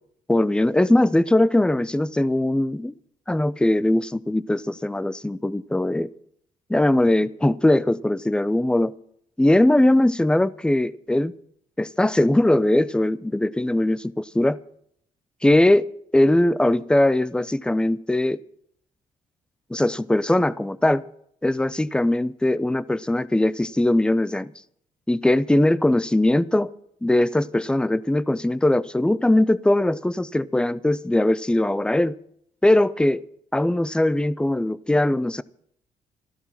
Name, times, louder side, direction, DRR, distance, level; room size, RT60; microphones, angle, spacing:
voice 1, 0.3-2.9 3.3-6.1 6.7-8.9 9.4-11.3 11.8-14.6 15.4-15.9 16.1-18.4 19.7-21.0 21.4-24.5 25.1-26.7 27.0-32.1 32.6-33.2 33.5-35.4, left 1 dB, 5° left, 19 dB, 0.6 m, -20 dB
14.0 x 12.5 x 5.9 m, 0.68 s
cardioid pair, 75°, 14 cm